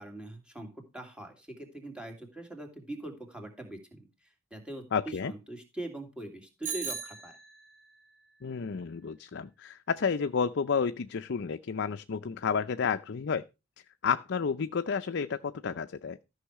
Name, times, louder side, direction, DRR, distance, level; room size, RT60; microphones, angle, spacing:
voice 1, 0.0-4.0 4.5-7.4, right 1 dB, 5° right, 2.8 m, -42 dB
voice 2, 4.9-5.3 8.4-13.4 14.0-16.2, left 6 dB, 55° left, 0.5 m, -31 dB
Bicycle bell, 6.6-7.9, right 6 dB, 35° right, 3.3 m, -38 dB
13.0 x 6.3 x 4.7 m
head